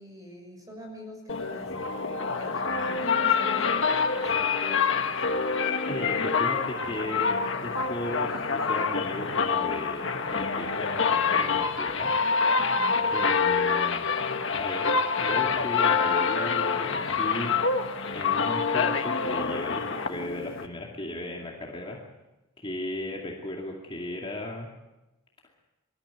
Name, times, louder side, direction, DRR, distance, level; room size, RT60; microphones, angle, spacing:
voice 1, 0.0-1.7 2.3-5.2 5.6-5.8 12.5-13.1, equal, 15° right, 2 dB, 6.3 m, -45 dB
sound 1, 1.3-20.7, left 5 dB, 55° left, 1.5 m, -26 dB
voice 2, 5.9-12.1 13.1-14.1 14.6-17.6 18.1-22.0 22.6-24.7, left 1 dB, 25° left, -1 dB, 2.4 m, -36 dB
24.0 x 14.0 x 9.6 m, 1.1 s
head